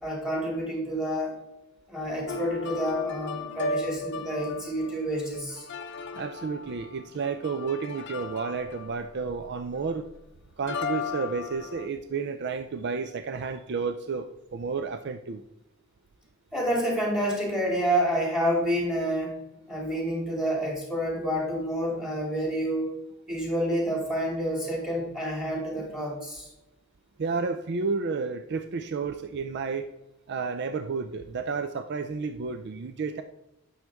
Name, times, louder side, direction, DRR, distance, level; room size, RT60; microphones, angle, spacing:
voice 1, 0.0-1.3 1.9-5.7 16.5-19.4 19.7-22.9 23.3-26.5, equal, ahead, -1 dB, 2.3 m, -28 dB
sound 1, 2.3-10.1 10.7-11.9, left 4 dB, 55° left, 0.6 m, -36 dB
voice 2, 6.1-10.1 10.6-15.4 27.2-29.9 30.3-33.2, right 4 dB, 50° right, 9 dB, 0.4 m, -31 dB
9.1 x 6.3 x 3.5 m, 0.91 s
head